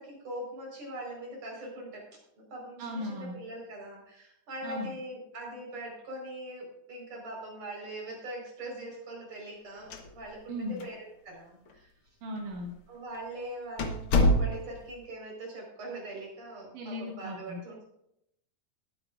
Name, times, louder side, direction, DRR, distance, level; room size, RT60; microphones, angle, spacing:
voice 1, 0.0-2.1 2.4-11.9 12.9-17.9, right 1 dB, 55° right, -1 dB, 5.8 m, -42 dB
voice 2, 2.8-3.4 4.6-4.9 10.5-10.8 12.2-12.7 16.7-17.6, left 1 dB, 85° right, -2 dB, 3.5 m, -37 dB
sound 1, 9.8-10.5 10.8-10.9 11.7-11.8 12.5-12.7 13.1-13.2 13.8-14.9, left 1 dB, 55° left, 1.8 m, -26 dB
21.5 x 9.4 x 2.5 m, 0.77 s
omnidirectional pair, 3.5 m